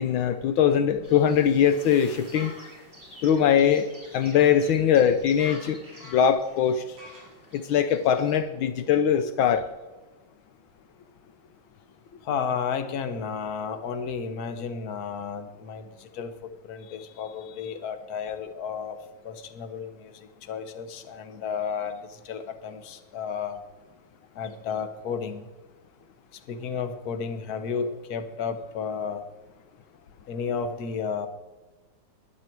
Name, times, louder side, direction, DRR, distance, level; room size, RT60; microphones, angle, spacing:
voice 1, 0.0-2.6 3.2-5.8 6.1-7.0 7.5-9.7, left 8 dB, 75° left, 10 dB, 1.5 m, -22 dB
sound 1, 1.0-8.4, equal, 10° right, 5.3 m, -47 dB
voice 2, 12.2-16.3 16.6-19.0 19.2-23.6 24.3-25.5 26.5-29.2 30.3-31.3, left 6 dB, 50° left, 9 dB, 1.5 m, -32 dB
21.0 x 9.9 x 4.6 m, 1.2 s
omnidirectional pair, 2.2 m